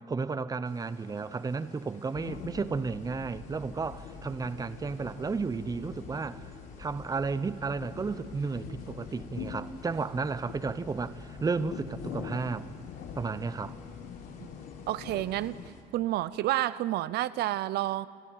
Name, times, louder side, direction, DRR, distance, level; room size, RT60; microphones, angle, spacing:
voice 1, 0.1-6.4 6.8-12.7 13.1-13.8, right 4 dB, 20° right, 15 dB, 0.8 m, -33 dB
sound 1, 0.6-15.8, left 3 dB, 50° left, 4.1 m, -55 dB
sound 2, 2.1-15.7, left 7 dB, 65° left, 1.5 m, -44 dB
voice 2, 14.9-15.6 15.9-18.1, right 15 dB, 75° right, 16 dB, 0.6 m, -29 dB
28.5 x 13.0 x 9.1 m, 2.2 s
cardioid pair, 110°, 17 cm